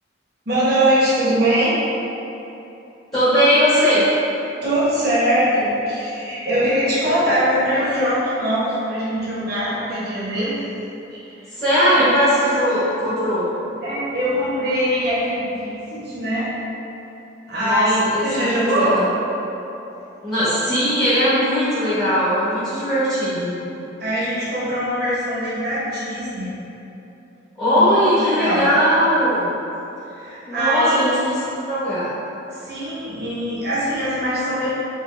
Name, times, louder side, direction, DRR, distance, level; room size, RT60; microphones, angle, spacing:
voice 1, 0.5-1.8 4.6-10.6 11.1-11.3 12.0-12.2 13.8-16.5 17.5-19.0 19.9-20.0 24.0-26.5 27.7-27.9 28.2-28.7 30.2-31.0 32.5-34.7, right 1 dB, 55° right, -9 dB, 1.0 m, -22 dB
voice 2, 3.1-4.0 11.5-13.5 17.6-19.1 20.2-23.6 27.6-29.5 30.5-32.1, equal, 20° left, -15 dB, 1.1 m, -19 dB
4.4 x 2.7 x 2.5 m, 2.9 s
head